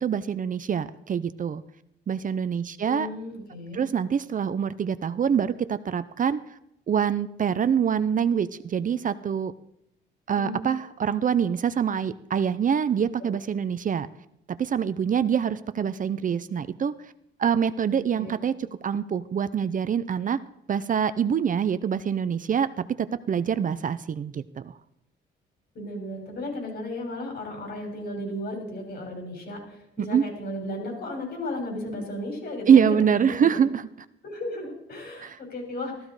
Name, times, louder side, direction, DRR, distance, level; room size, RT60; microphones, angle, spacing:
voice 1, 0.0-1.6 2.1-3.1 3.7-6.4 6.9-9.5 10.3-14.1 14.5-16.9 17.4-20.4 20.7-24.7 30.1-30.2 32.7-33.9 35.2-35.4, right 7 dB, 40° right, 13 dB, 0.6 m, -25 dB
voice 2, 2.8-3.8 10.3-10.5 18.1-18.3 25.7-33.6 34.2-35.9, left 1 dB, 55° left, 2 dB, 6.3 m, -34 dB
14.0 x 14.0 x 4.8 m, 0.79 s
cardioid pair, 90°, 20 cm